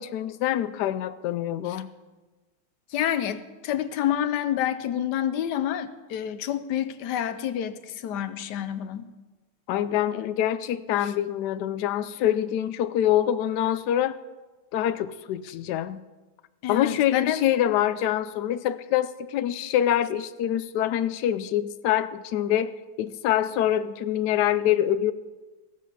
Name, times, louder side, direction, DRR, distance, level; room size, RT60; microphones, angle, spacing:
voice 1, 0.0-1.9 9.7-14.2 14.7-16.0 16.7-25.1, left 11 dB, 85° left, 13 dB, 0.9 m, -25 dB
voice 2, 2.9-9.1 11.0-11.1 16.6-17.4, left 10 dB, 65° left, 13 dB, 1.1 m, -28 dB
15.5 x 8.3 x 6.8 m, 1.2 s
omnidirectional pair, 2.3 m